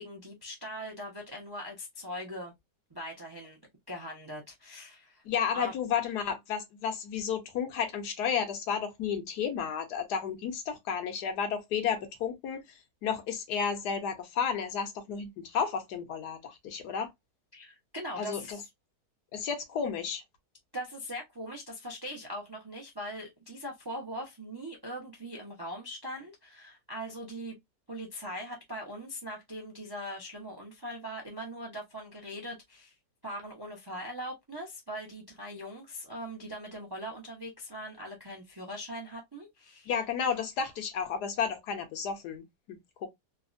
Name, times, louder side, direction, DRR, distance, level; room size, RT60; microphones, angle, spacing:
voice 1, 0.0-2.5 2.9-3.6 3.9-5.2 5.5-5.7 17.5-18.7 20.7-27.6 27.9-32.9 33.2-39.9, equal, 40° right, 0.3 m, -41 dB
voice 2, 5.2-12.6 13.0-17.1 18.2-18.6 19.3-20.2 39.9-43.1, left 7 dB, 75° left, 1.4 m, -32 dB
3.4 x 2.1 x 2.4 m
omnidirectional pair, 1.8 m